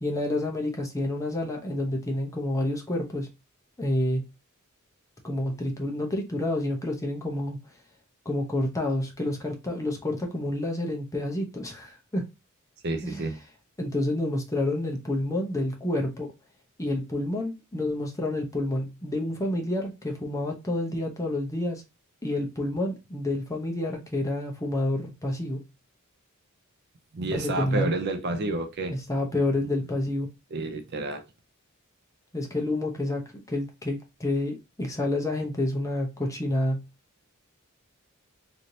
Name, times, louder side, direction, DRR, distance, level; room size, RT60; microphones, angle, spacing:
voice 1, 0.0-3.3 3.8-4.2 5.2-7.6 8.2-12.2 13.0-13.3 13.8-16.3 16.8-21.8 22.2-25.6 27.3-27.9 28.9-30.3 32.3-33.2 33.5-36.8, left 1 dB, 15° left, 0.7 m, -29 dB
voice 2, 12.8-13.4 27.1-28.9 30.5-31.2, right 2 dB, 50° right, 0.5 m, -29 dB
3.1 x 2.8 x 2.6 m
head